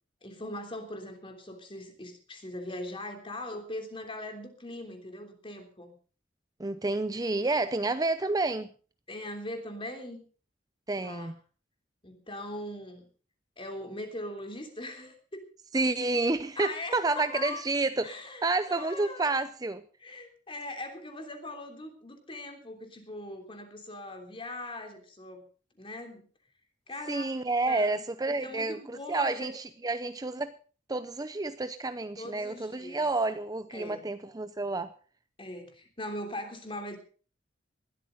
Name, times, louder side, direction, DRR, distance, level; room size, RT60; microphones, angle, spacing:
voice 1, 0.2-5.9 9.1-10.2 11.0-11.3 12.0-13.1 13.6-15.4 16.6-17.6 18.0-19.3 20.0-25.4 25.8-26.3 26.9-27.3 27.7-28.0 28.3-29.5 32.2-33.1 33.7-34.1 35.4-37.0, left 1 dB, 30° left, 5 dB, 3.2 m, -40 dB
voice 2, 6.6-8.7 10.9-11.3 15.7-18.1 18.4-19.8 27.1-30.5 30.9-34.9, right 3 dB, 20° right, 12 dB, 0.6 m, -29 dB
20.0 x 13.0 x 3.9 m, 0.39 s
head